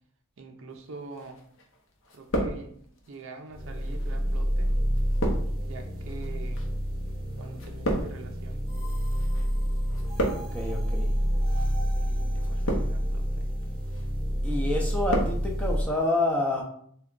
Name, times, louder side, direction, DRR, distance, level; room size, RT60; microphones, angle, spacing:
voice 1, 0.4-1.4 2.1-2.8 3.1-4.8 5.6-6.7 7.4-8.6 12.0-13.5, right 3 dB, 60° right, 5 dB, 0.5 m, -44 dB
sound 1, 1.2-1.8 2.0-3.1 3.8-9.4 9.7-10.7 11.4-11.7 12.4-13.2 13.6-14.1 14.4-15.4 15.7-15.8, right 1 dB, 60° left, 0.7 m, -32 dB
sound 2, 3.5-15.8, equal, 25° right, 0.8 m, -28 dB
voice 2, 10.4-11.1 14.4-16.6, left 2 dB, 5° left, -1 dB, 0.5 m, -28 dB
3.5 x 2.2 x 3.7 m, 0.63 s
head